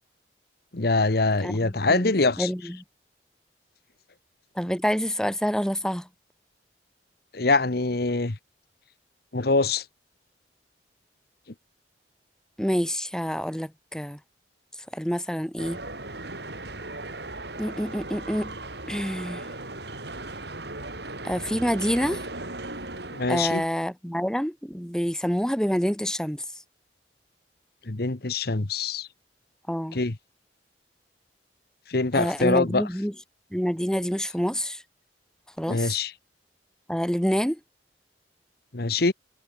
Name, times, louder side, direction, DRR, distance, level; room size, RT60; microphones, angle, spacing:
voice 1, 0.7-2.5 7.3-8.4 9.3-9.9 23.1-23.6 27.9-29.1 29.9-30.2 31.9-32.8 35.7-36.1 38.7-39.1, left 3 dB, 60° left, 1.2 m, -24 dB
voice 2, 1.4-2.1 2.4-2.8 4.6-6.1 12.6-14.2 14.9-15.8 17.6-18.5 18.9-19.5 21.2-22.2 23.3-26.4 29.7-30.0 32.1-33.1 33.5-34.8 35.6-36.0 36.9-37.6, equal, 5° left, 2.9 m, -27 dB
sound 1, 15.6-23.7, right 2 dB, 65° right, 7.7 m, -37 dB
head